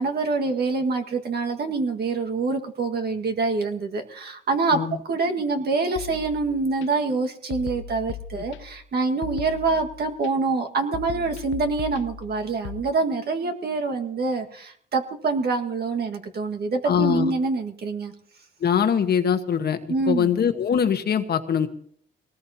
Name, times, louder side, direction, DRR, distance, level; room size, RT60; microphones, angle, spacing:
voice 1, 0.0-4.8 5.0-18.1 19.9-20.3, right 3 dB, 55° right, 3 dB, 1.8 m, -25 dB
sound 1, 6.0-6.9 7.5-8.9 9.2-10.3 10.9-12.8, left 9 dB, 75° left, 0.6 m, -38 dB
voice 2, 16.8-17.3 18.6-19.8 20.1-21.7, left 7 dB, 55° left, 8 dB, 1.3 m, -22 dB
21.0 x 19.0 x 2.8 m, 0.63 s
cardioid pair, 90°, 20 cm